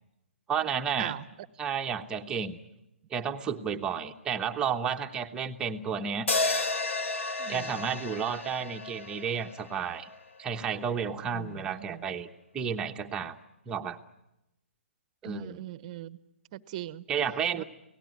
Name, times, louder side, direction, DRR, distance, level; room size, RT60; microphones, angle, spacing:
voice 1, 0.5-1.2 1.6-2.6 3.1-6.3 7.5-10.1 10.4-12.3 12.5-13.4 13.7-14.0 15.2-15.6 17.1-17.6, right 7 dB, 10° right, 5 dB, 1.1 m, -32 dB
sound 1, 6.3-10.6, left 3 dB, 80° left, 2.1 m, -32 dB
voice 2, 7.4-7.8 11.3-12.1 15.2-16.2 16.5-17.0 17.6-17.7, right 14 dB, 35° right, 17 dB, 0.9 m, -40 dB
28.0 x 18.0 x 9.4 m, 0.91 s
hypercardioid pair, 150°, 7 cm